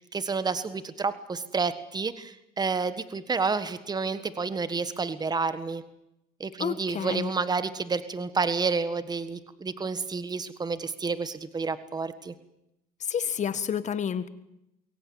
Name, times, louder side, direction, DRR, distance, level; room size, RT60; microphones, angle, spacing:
voice 1, 0.0-5.8 6.4-12.3, right 4 dB, 25° right, 13 dB, 1.6 m, -30 dB
voice 2, 6.6-7.3 13.1-14.3, left 8 dB, 45° left, 13 dB, 1.7 m, -29 dB
22.5 x 17.5 x 9.7 m, 0.84 s
cardioid pair, 110°, 17 cm